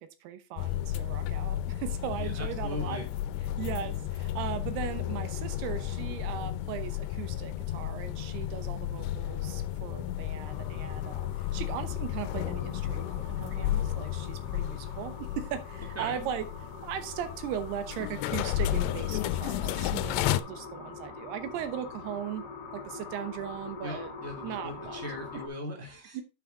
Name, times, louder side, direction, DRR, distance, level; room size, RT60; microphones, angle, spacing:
voice 1, 0.0-3.0 3.6-16.5 16.8-22.4 22.7-24.1 24.4-25.0 26.1-26.2, right 10 dB, 80° right, 10 dB, 2.8 m, -38 dB
sound 1, 0.6-20.4, left 13 dB, 90° left, 2.7 m, -33 dB
voice 2, 2.2-3.0 15.9-16.2 23.8-26.2, equal, 5° left, 0 dB, 1.6 m, -39 dB
sound 2, 10.4-25.5, left 4 dB, 45° left, 1.4 m, -45 dB
9.0 x 6.0 x 3.8 m, 0.29 s
omnidirectional pair, 4.7 m